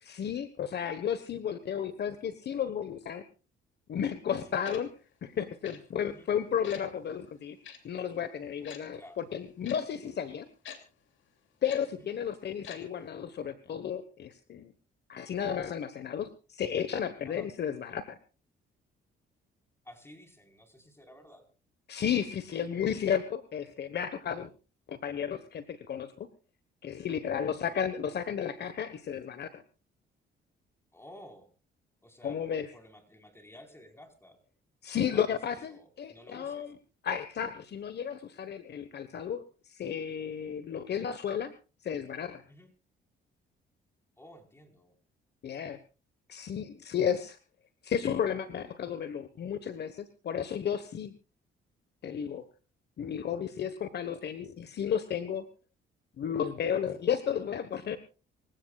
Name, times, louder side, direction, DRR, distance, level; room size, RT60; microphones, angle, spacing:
voice 1, 0.0-3.2 3.9-4.9 5.2-7.6 7.8-10.5 11.6-14.7 15.1-18.2 21.9-24.5 24.9-26.3 26.8-29.6 32.2-32.7 34.8-36.7 37.0-41.5 41.8-42.4 45.4-45.8 46.3-47.4 47.8-51.1 52.0-52.4 53.0-55.4 56.2-58.0, left 8 dB, 55° left, 11 dB, 1.3 m, -33 dB
Tick-tock, 4.6-4.8 5.6-5.8 6.6-6.8 7.6-7.8 8.6-8.8 9.6-9.8 10.6-10.8 11.6-11.8 12.6-12.8 13.1-13.2, left 8 dB, 75° left, 2.8 m, -45 dB
voice 2, 19.8-21.4 22.7-22.8 27.3-27.5 30.9-31.5 32.0-34.4 35.1-36.7 42.5-42.7 44.2-45.0 53.5-53.8 56.9-57.0, left 1 dB, 10° left, 4 dB, 4.6 m, -53 dB
26.0 x 16.0 x 2.4 m, 0.32 s
cardioid pair, 90°, 20 cm